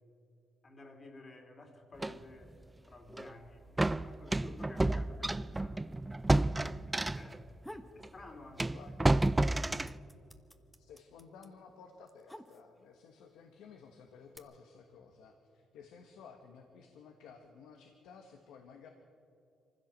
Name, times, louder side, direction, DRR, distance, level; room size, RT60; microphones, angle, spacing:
voice 1, 0.6-2.6 2.9-5.9 6.2-7.5 7.9-9.0 9.3-10.0, left 2 dB, 35° left, 3 dB, 3.0 m, -53 dB
sound 1, 2.0-2.2 3.1-3.3 3.8-7.4 8.0-8.1 8.6-10.0, right 2 dB, 15° right, 0.4 m, -30 dB
sound 2, 7.5-8.0 8.4-9.1 9.4-13.0 13.7-14.4, equal, 5° left, 1.2 m, -51 dB
voice 2, 8.7-9.3 10.8-18.9, left 6 dB, 90° left, 4 dB, 1.4 m, -55 dB
23.5 x 15.5 x 7.5 m, 2.6 s
cardioid pair, 90°, 0 cm